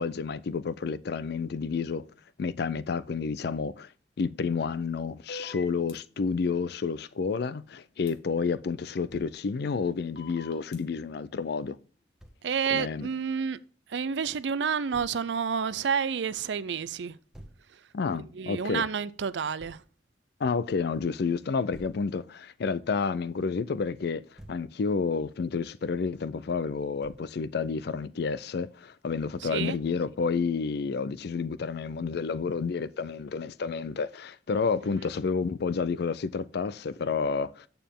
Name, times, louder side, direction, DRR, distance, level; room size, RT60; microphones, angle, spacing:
voice 1, 0.0-2.1 2.4-3.9 4.2-11.8 12.7-13.1 17.9-18.9 20.4-37.7, left 5 dB, 65° left, 0.4 m, -30 dB
sound 1, 5.3-5.9 8.1-8.2 10.2-10.8, left 3 dB, 85° left, 1.6 m, -43 dB
Thump thud, 9.1-9.4 12.2-12.4 14.9-15.2 17.3-17.7 19.6-19.9 21.7-22.1 24.1-24.7 27.0-27.3, equal, 5° right, 1.2 m, -49 dB
voice 2, 12.4-13.6 13.9-17.2 18.3-19.8 29.4-29.8, right 6 dB, 90° right, 0.5 m, -29 dB
9.1 x 6.9 x 3.6 m
head